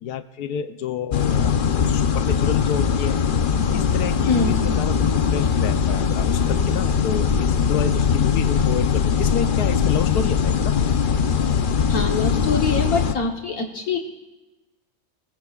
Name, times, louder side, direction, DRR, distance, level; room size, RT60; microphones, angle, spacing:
voice 1, 0.0-3.2 3.7-10.7, left 8 dB, 90° left, 9 dB, 1.3 m, -29 dB
sound 1, 1.1-13.2, left 6 dB, 50° left, 0.7 m, -21 dB
voice 2, 11.9-14.0, left 4 dB, 70° left, 3 dB, 1.6 m, -24 dB
28.0 x 20.0 x 2.4 m, 1.1 s
omnidirectional pair, 1.6 m